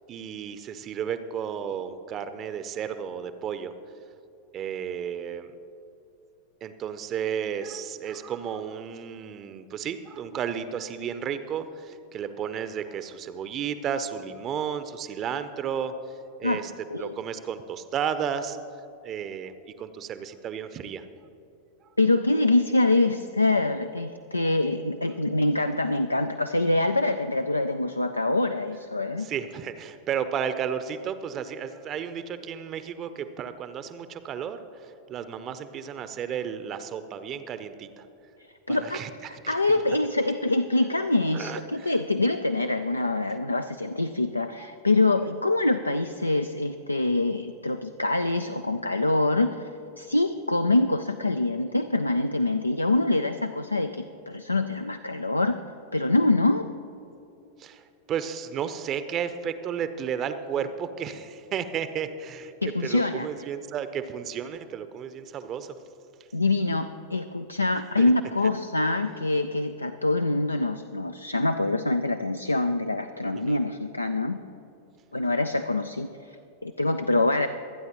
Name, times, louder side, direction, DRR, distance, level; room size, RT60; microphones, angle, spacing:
voice 1, 0.1-3.7 4.5-5.5 6.6-16.7 17.0-18.6 19.0-21.0 29.2-38.1 38.7-39.8 41.3-41.9 44.6-44.7 57.6-62.5 62.8-65.7 68.0-68.1 73.3-73.6, right 8 dB, 30° right, 11 dB, 0.6 m, -33 dB
voice 2, 22.0-29.3 38.4-49.7 50.0-55.6 55.9-56.7 62.6-63.3 66.3-74.4 75.1-77.5, left 2 dB, 85° left, 9 dB, 0.3 m, -25 dB
25.0 x 9.3 x 3.0 m, 2.8 s
figure-of-eight pair, 90°, 0 cm